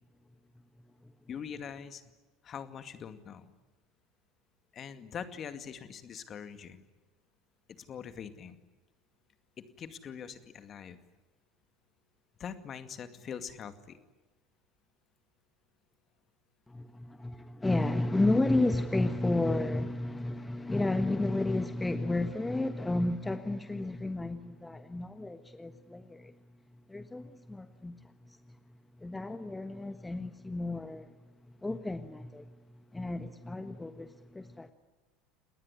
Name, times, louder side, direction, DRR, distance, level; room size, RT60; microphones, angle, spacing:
voice 1, 1.3-2.0 2.4-3.5 4.7-6.9 7.9-8.6 9.6-11.0 12.4-14.0, left 7 dB, 35° left, 2.3 m, -43 dB
voice 2, 16.7-26.3 26.9-28.4 29.0-31.1 31.6-32.5 32.9-34.7, left 2 dB, 10° left, 1.4 m, -32 dB
29.0 x 20.0 x 9.9 m
figure-of-eight pair, 70°, 0 cm